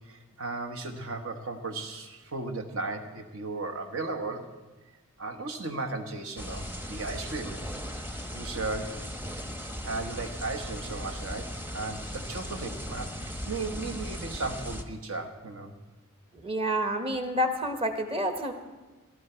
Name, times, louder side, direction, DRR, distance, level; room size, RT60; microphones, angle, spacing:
voice 1, 0.0-4.5 5.2-7.7 8.3-9.1 9.8-15.7, right 3 dB, 65° right, 6 dB, 1.4 m, -36 dB
sound 1, 6.4-14.8, equal, 10° right, 1.0 m, -38 dB
voice 2, 16.3-18.5, equal, 25° right, 6 dB, 1.3 m, -29 dB
17.5 x 12.5 x 4.5 m, 1.2 s
head